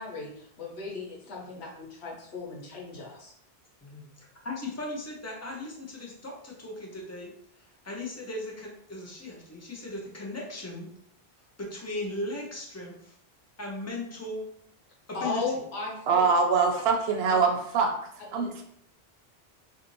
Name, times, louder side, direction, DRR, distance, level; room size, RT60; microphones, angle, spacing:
voice 1, 0.0-3.3 15.1-16.3 17.3-17.4 18.3-18.6, left 3 dB, 80° left, -4 dB, 1.2 m, -36 dB
voice 2, 3.8-7.3 7.6-10.9 11.6-13.2 13.6-14.4 15.1-15.4, left 2 dB, 20° left, -2 dB, 0.4 m, -37 dB
voice 3, 16.1-18.0 18.3-18.6, right 5 dB, 75° right, 3 dB, 0.8 m, -24 dB
2.5 x 2.4 x 3.0 m, 0.67 s
omnidirectional pair, 1.1 m